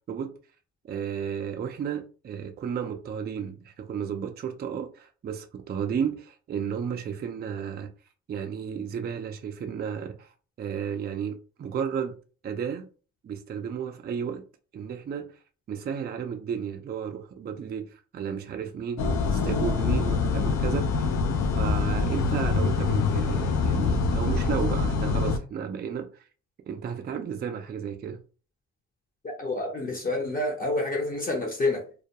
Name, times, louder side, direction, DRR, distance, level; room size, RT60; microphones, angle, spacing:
voice 1, 0.9-7.9 8.3-10.3 10.6-12.2 12.4-12.9 13.2-14.4 14.7-15.4 15.7-21.1 21.4-26.2 26.7-28.2, right 7 dB, 35° right, 0.4 m, -33 dB
sound 1, 19.0-25.4, left 4 dB, 65° left, 0.5 m, -25 dB
voice 2, 29.2-31.8, left 2 dB, 30° left, 0.6 m, -28 dB
2.2 x 2.1 x 2.8 m
cardioid pair, 90°, 30 cm